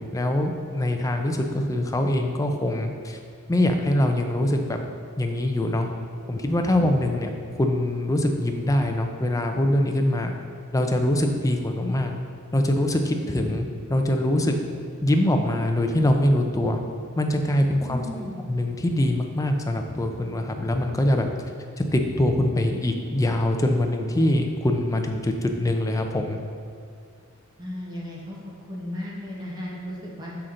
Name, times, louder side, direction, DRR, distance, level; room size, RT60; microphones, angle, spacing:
voice 1, 0.0-3.2 3.5-4.8 5.2-5.9 6.3-10.3 10.7-12.1 12.5-14.6 15.0-16.8 17.2-21.3 21.9-26.4, left 1 dB, 15° left, 4 dB, 0.5 m, -23 dB
voice 2, 17.8-18.4 27.6-28.4 28.7-30.4, left 1 dB, 20° right, -4 dB, 1.0 m, -35 dB
6.5 x 5.8 x 3.7 m, 2.3 s
head